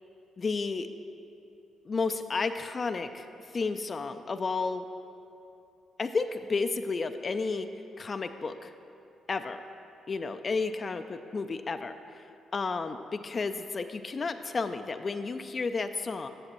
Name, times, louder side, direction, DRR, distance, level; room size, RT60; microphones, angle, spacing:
voice 1, 0.4-0.9 1.9-3.3 3.5-4.9 6.0-7.7 8.0-8.7 9.3-9.6 10.1-11.9 12.5-16.3, left 4 dB, 40° left, 9 dB, 0.3 m, -32 dB
9.8 x 6.6 x 2.9 m, 2.8 s
supercardioid pair, 55°, 0 cm